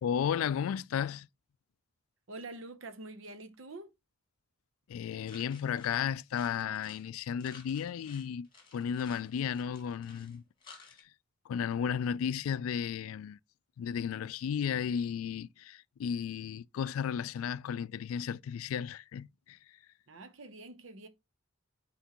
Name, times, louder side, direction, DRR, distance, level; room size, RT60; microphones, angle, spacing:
voice 1, 0.0-1.3 4.9-10.4 11.5-13.4 13.8-19.6, left 8 dB, 90° left, 0.3 m, -34 dB
voice 2, 2.3-3.9 20.1-21.1, right 2 dB, 70° right, 0.8 m, -46 dB
sound 1, 5.3-7.1 7.4-11.0, left 4 dB, 25° left, 1.9 m, -55 dB
8.1 x 4.5 x 3.0 m
head